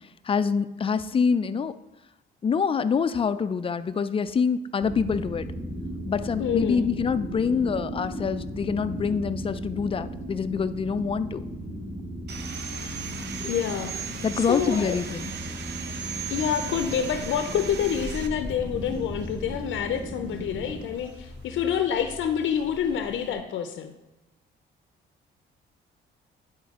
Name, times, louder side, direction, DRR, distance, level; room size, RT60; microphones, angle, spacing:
voice 1, 0.3-1.7 2.4-5.5 6.1-11.4 14.2-15.3, left 6 dB, 30° left, 12 dB, 0.4 m, -26 dB
sound 1, 4.8-20.8, equal, 25° right, 1.8 m, -36 dB
voice 2, 6.4-6.9 13.5-13.9 14.3-15.0 16.3-23.9, left 8 dB, 75° left, 7 dB, 0.6 m, -27 dB
Sawing, 12.3-18.3, right 7 dB, 60° right, 0.7 m, -37 dB
sound 2, 16.7-23.4, equal, 90° right, 2.1 m, -43 dB
10.5 x 4.4 x 3.6 m, 1.0 s
cardioid pair, 90°, 20 cm